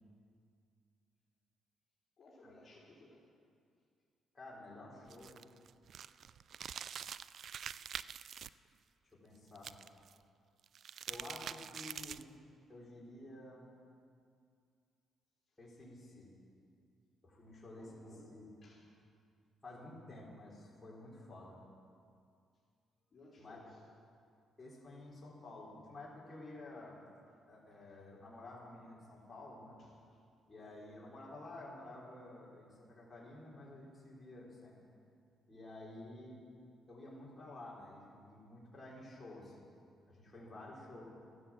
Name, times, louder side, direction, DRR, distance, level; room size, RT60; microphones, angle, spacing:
voice 1, 2.2-3.3 6.8-7.2 11.0-11.1 15.5-15.6 17.5-18.9 23.1-23.8 27.6-28.1 29.8-30.2 30.5-30.8 38.9-39.1, left 2 dB, 45° left, -7 dB, 4.1 m, -62 dB
voice 2, 4.3-5.4 9.1-9.7 11.1-12.3 12.7-13.6 15.6-16.3 17.2-18.5 19.6-21.6 23.4-23.6 24.6-27.0 27.5-29.8 30.5-34.8 35.5-36.4 36.9-39.7 40.1-41.0, left 2 dB, 20° left, -6 dB, 4.6 m, -51 dB
sound 1, 5.1-8.5 9.6-10.1 10.6-12.4, right 8 dB, 60° right, 0.3 m, -45 dB
14.0 x 11.0 x 7.8 m, 2.3 s
cardioid pair, 90°, 0 cm